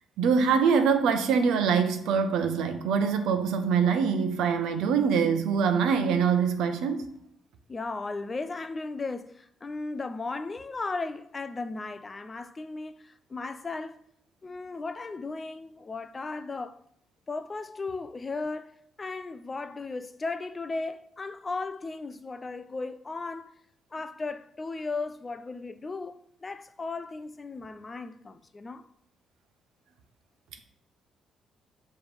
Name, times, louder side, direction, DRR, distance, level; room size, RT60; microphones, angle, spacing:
voice 1, 0.2-7.1, right 6 dB, 85° right, 0.7 m, -24 dB
voice 2, 7.7-14.0 14.4-16.7 17.3-23.5 23.9-28.9, left 3 dB, 20° left, 0.3 m, -36 dB
7.2 x 3.1 x 5.0 m
cardioid pair, 170°, 0 cm